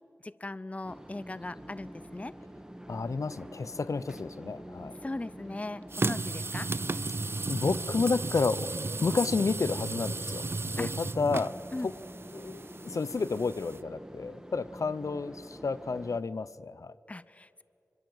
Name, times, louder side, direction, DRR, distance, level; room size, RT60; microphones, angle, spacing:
voice 1, 0.2-2.4 5.0-6.7 10.8-10.9 11.7-11.9 17.1-17.6, left 2 dB, 25° left, 17 dB, 0.6 m, -39 dB
sound 1, 0.8-16.2, equal, 10° right, 1.8 m, -47 dB
voice 2, 2.9-5.0 7.5-8.7 9.0-11.5 11.8-11.9 12.3-16.9, left 4 dB, 75° left, 16 dB, 0.8 m, -31 dB
sound 2, 5.9-13.8, right 3 dB, 45° right, 0.7 m, -35 dB
26.5 x 25.0 x 8.1 m, 2.7 s
wide cardioid pair, 75°, 5 cm